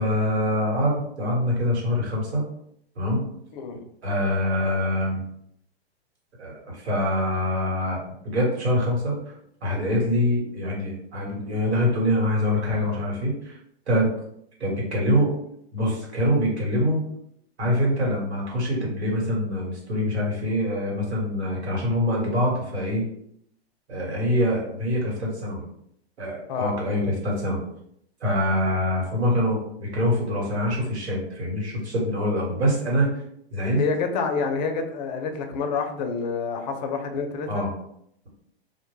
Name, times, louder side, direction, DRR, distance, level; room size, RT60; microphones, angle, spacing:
voice 1, 0.0-2.4 3.0-3.2 4.0-5.2 6.4-9.1 9.6-13.5 13.9-14.1 14.6-15.3 15.7-17.0 17.6-23.1 23.9-25.6 26.2-27.6 28.2-33.1 33.5-33.8 37.5-37.7, equal, 80° right, -2 dB, 1.2 m, -24 dB
voice 2, 3.5-3.8 26.5-26.7 33.7-37.7, left 5 dB, 40° left, 5 dB, 0.5 m, -28 dB
2.1 x 2.1 x 3.1 m, 0.72 s
hypercardioid pair, 120°, 33 cm